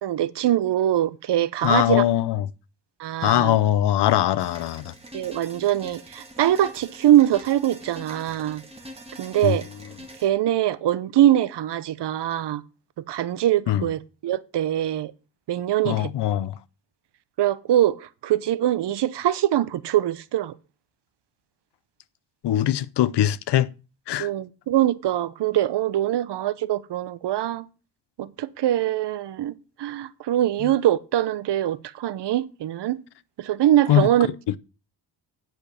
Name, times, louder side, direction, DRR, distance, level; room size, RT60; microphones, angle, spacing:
voice 1, 0.0-2.0 3.0-3.5 5.1-8.6 9.2-9.7 10.2-12.6 13.1-15.1 15.5-16.1 17.4-20.5 24.2-27.7 28.2-33.0 33.4-34.3, right 12 dB, 70° right, 0.8 m, -23 dB
voice 2, 1.6-2.5 3.2-4.9 9.4-9.6 13.7-13.9 15.8-16.6 22.4-23.7 24.1-24.3 30.6-30.7 33.9-34.6, left 12 dB, 70° left, 0.7 m, -22 dB
sound 1, 4.4-10.3, equal, 15° right, 1.9 m, -44 dB
9.3 x 5.2 x 6.3 m
wide cardioid pair, 130°, 43 cm